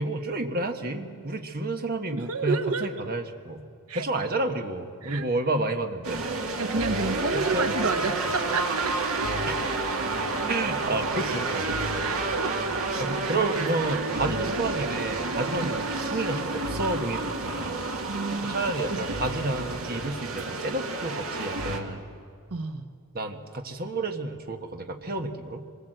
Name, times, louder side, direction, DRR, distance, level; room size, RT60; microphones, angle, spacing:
voice 1, 0.0-3.6 3.9-6.2 7.3-8.3 9.5-9.7 10.5-11.7 13.0-17.8 18.4-22.0 23.1-25.6, right 2 dB, 45° right, 5 dB, 1.5 m, -30 dB
voice 2, 2.1-2.9 3.9-4.1 5.0-5.2 6.6-9.0 12.0-12.6 13.3-13.4 15.6-15.7 18.1-18.6 18.9-19.0 22.5-22.9, right 4 dB, 85° right, 8 dB, 1.1 m, -30 dB
sound 1, 6.0-21.8, right 3 dB, 70° right, 2.3 m, -30 dB
25.5 x 21.5 x 7.9 m, 2.3 s
head